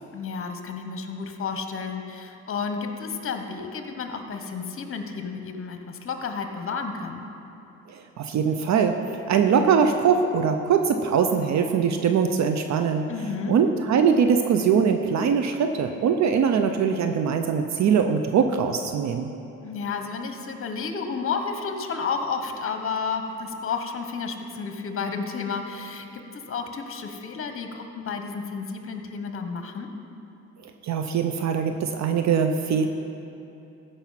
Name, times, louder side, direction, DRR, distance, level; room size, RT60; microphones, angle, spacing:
voice 1, 0.1-7.2 13.1-13.5 19.6-29.9, left 5 dB, 45° left, 6 dB, 1.2 m, -31 dB
voice 2, 7.9-13.1 13.5-19.3 30.6-32.9, right 6 dB, 65° right, 6 dB, 0.7 m, -22 dB
15.0 x 5.5 x 5.8 m, 2.8 s
cardioid pair, 90°, 30 cm